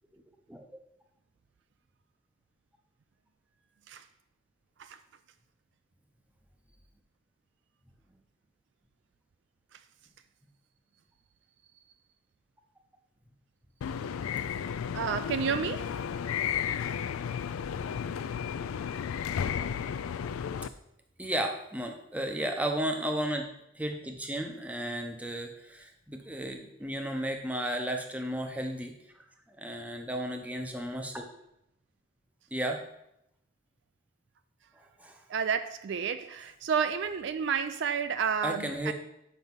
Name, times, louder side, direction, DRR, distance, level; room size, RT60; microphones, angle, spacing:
sound 1, 13.8-20.7, left 8 dB, 85° left, 0.3 m, -33 dB
voice 1, 14.6-15.9 35.3-38.9, right 6 dB, 55° right, 10 dB, 0.3 m, -31 dB
voice 2, 21.2-23.5 23.7-28.9 29.6-31.3 32.5-32.8 35.0-35.2 38.4-38.9, right 1 dB, 5° right, 3 dB, 0.6 m, -34 dB
5.4 x 5.2 x 6.0 m, 0.81 s
head